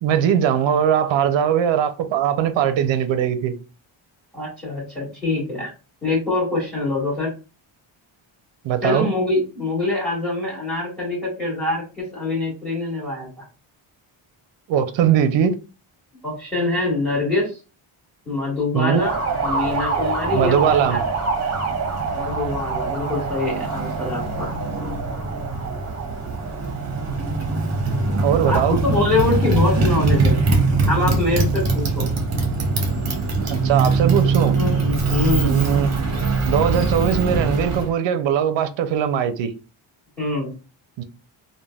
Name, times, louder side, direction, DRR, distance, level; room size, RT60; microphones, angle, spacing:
voice 1, 0.0-3.5 8.6-9.1 14.7-15.6 18.7-19.0 20.3-21.0 28.2-28.8 33.4-34.5 35.4-35.9 36.5-39.5 41.0-41.1, right 8 dB, 65° right, 0.5 m, -20 dB
voice 2, 4.3-5.7 6.0-7.3 8.8-13.5 16.2-17.6 18.2-21.0 22.1-24.5 28.4-30.4 30.8-32.1 34.5-35.6 40.2-40.5, left 2 dB, 5° left, 1.6 m, -24 dB
Motorcycle, 18.9-37.9, right 3 dB, 35° right, 0.7 m, -22 dB
3.2 x 2.2 x 2.2 m
wide cardioid pair, 115°, 49 cm